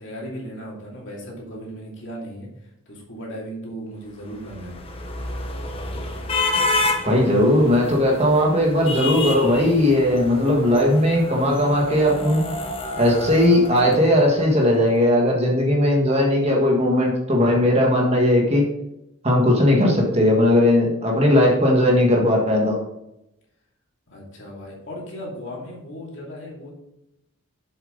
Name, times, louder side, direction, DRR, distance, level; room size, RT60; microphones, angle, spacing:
voice 1, 0.0-2.5 2.9-4.8 24.1-26.7, equal, 55° left, -3 dB, 2.8 m, -36 dB
sound 1, 4.2-14.5, left 2 dB, 25° left, 0.9 m, -29 dB
voice 2, 7.0-12.4 13.0-18.6 19.2-22.8, left 1 dB, 30° right, -1 dB, 1.7 m, -18 dB
7.5 x 7.1 x 4.0 m, 0.84 s
head